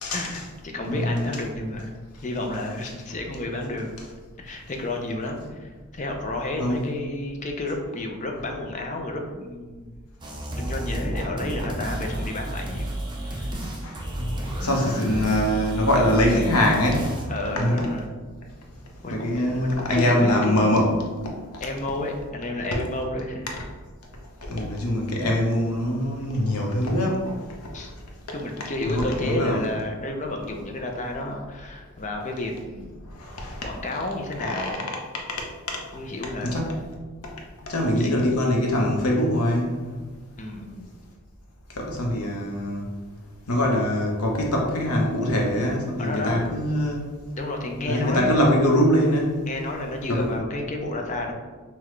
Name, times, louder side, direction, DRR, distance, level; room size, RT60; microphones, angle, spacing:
voice 1, 0.1-1.9 2.2-3.9 4.4-9.9 10.6-12.9 13.2-13.5 14.8-15.0 17.3-18.1 19.0-21.0 21.6-23.5 27.7-27.9 28.3-33.0 33.6-34.9 35.9-36.7 37.6-38.2 40.4-40.9 46.0-46.4 47.4-48.5 49.4-51.3, left 2 dB, 35° left, 2 dB, 0.5 m, -31 dB
voice 2, 0.9-1.2 6.6-6.8 13.8-14.3 14.6-17.1 17.6-17.9 19.1-20.9 24.5-27.3 28.8-29.6 33.2-33.6 34.6-34.7 36.4-36.7 37.7-40.0 41.8-42.9 43.5-47.0 47.9-49.3 50.1-50.2, left 1 dB, 85° left, 0 dB, 0.9 m, -23 dB
sound 1, 10.2-17.3, right 1 dB, 20° right, 0.5 m, -31 dB
5.7 x 2.3 x 3.1 m, 1.4 s
head